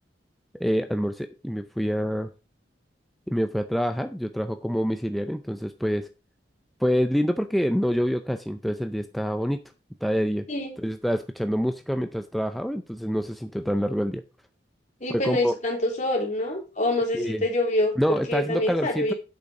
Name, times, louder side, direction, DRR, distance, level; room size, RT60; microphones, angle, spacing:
voice 1, 0.5-2.3 3.3-6.1 6.8-9.6 10.0-10.5 10.8-14.2 15.1-15.5 17.1-17.4 18.0-19.1, equal, ahead, 7 dB, 0.5 m, -26 dB
voice 2, 15.0-17.9 18.3-19.1, left 1 dB, 45° left, 1 dB, 3.2 m, -26 dB
8.4 x 6.7 x 4.8 m, 0.30 s
head